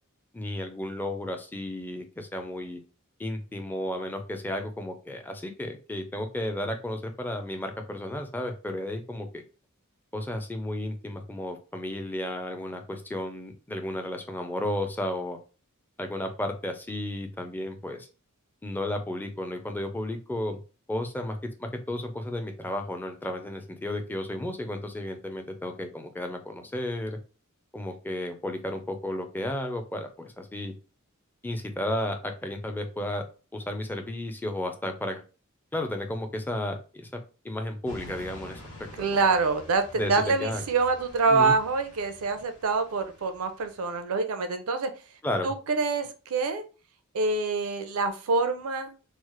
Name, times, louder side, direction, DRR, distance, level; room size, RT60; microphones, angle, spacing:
voice 1, 0.3-2.8 3.2-9.4 10.1-15.4 16.0-18.1 18.6-20.6 20.9-27.2 27.7-30.7 31.4-33.2 33.5-35.2 35.7-38.6 39.0-39.2 39.9-40.6 41.3-41.6 45.2-45.5, left 1 dB, 10° left, 5 dB, 0.4 m, -33 dB
sound 1, 37.9-44.0, left 1 dB, 75° left, 0.9 m, -48 dB
voice 2, 39.0-44.9 45.4-46.6 47.1-48.9, right 4 dB, 75° right, 8 dB, 0.5 m, -26 dB
3.1 x 2.0 x 2.9 m, 0.34 s
head